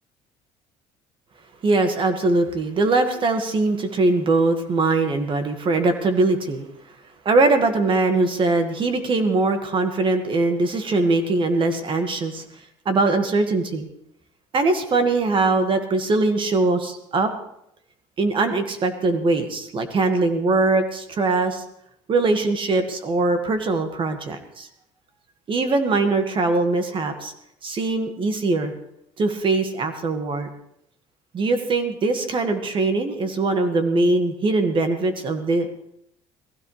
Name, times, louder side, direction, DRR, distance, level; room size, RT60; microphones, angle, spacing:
voice 1, 1.6-6.7 7.3-12.4 12.9-13.9 14.5-17.3 18.2-21.6 22.1-24.7 25.5-27.3 27.6-28.7 29.2-30.5 31.3-35.7, right 3 dB, 40° right, 7 dB, 1.9 m, -21 dB
19.5 x 15.5 x 3.4 m, 0.77 s
supercardioid pair, 90°, 13 cm